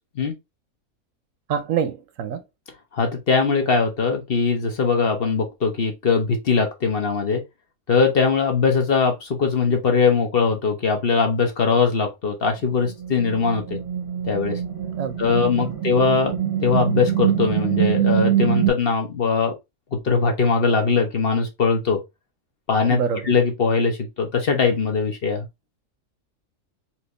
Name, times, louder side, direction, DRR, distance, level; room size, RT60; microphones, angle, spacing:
voice 1, 1.5-2.4 14.9-15.1 15.6-15.7 22.9-23.3, right 7 dB, 75° right, 1.0 m, -25 dB
voice 2, 2.9-7.4 7.9-13.8 14.2-14.6 15.2-16.3 16.6-19.5 19.9-22.0 22.7-23.0 23.2-25.5, left 5 dB, 50° left, 1.0 m, -21 dB
sound 1, 12.8-18.7, right 10 dB, 20° right, 1.1 m, -24 dB
4.4 x 2.7 x 3.1 m
omnidirectional pair, 1.4 m